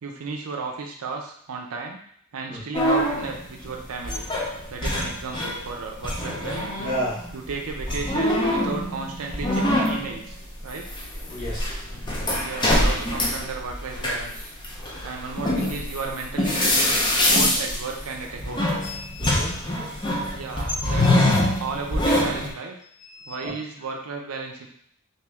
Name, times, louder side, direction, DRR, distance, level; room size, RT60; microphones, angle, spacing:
voice 1, 0.0-2.0 2.3-4.3 4.7-6.8 7.3-10.9 12.4-14.5 15.0-17.0 17.3-18.7 20.3-22.8 23.3-24.7, right 4 dB, 80° right, 1 dB, 0.5 m, -34 dB
sound 1, 2.7-5.7 6.0-22.5, left 1 dB, 20° left, 0.6 m, -24 dB
voice 2, 6.8-7.2 11.3-11.7 18.8-19.5 23.1-23.5, equal, 35° left, -9 dB, 1.0 m, -31 dB
3.0 x 2.8 x 3.4 m, 0.66 s
head